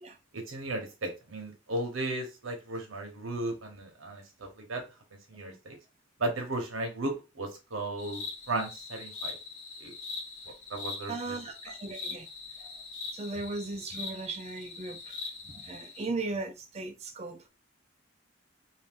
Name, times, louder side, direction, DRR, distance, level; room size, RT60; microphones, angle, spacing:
voice 1, 0.3-4.8 5.1-5.8 6.2-9.4 9.8-9.9 10.5-11.4, right 2 dB, 80° right, 1.1 m, -35 dB
sound 1, 8.0-16.1, left 3 dB, 85° left, 0.9 m, -42 dB
voice 2, 11.1-12.3 12.6-12.7 13.1-15.2 15.4-17.5, right 3 dB, 30° right, 0.5 m, -37 dB
2.7 x 2.7 x 3.5 m
head